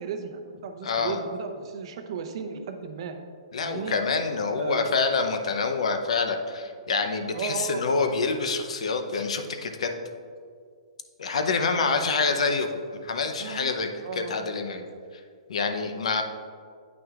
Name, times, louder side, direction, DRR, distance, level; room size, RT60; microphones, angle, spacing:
voice 1, 0.0-3.1 3.6-4.0 4.6-5.1 7.3-7.8 11.7-12.6 13.4-13.7 14.0-14.3, right 6 dB, 55° right, 6 dB, 0.7 m, -35 dB
voice 2, 0.8-1.2 3.5-9.9 11.2-14.8 15.5-16.2, left 4 dB, 75° left, 6 dB, 0.7 m, -27 dB
9.2 x 6.0 x 2.4 m, 2.1 s
hypercardioid pair, 150°, 3 cm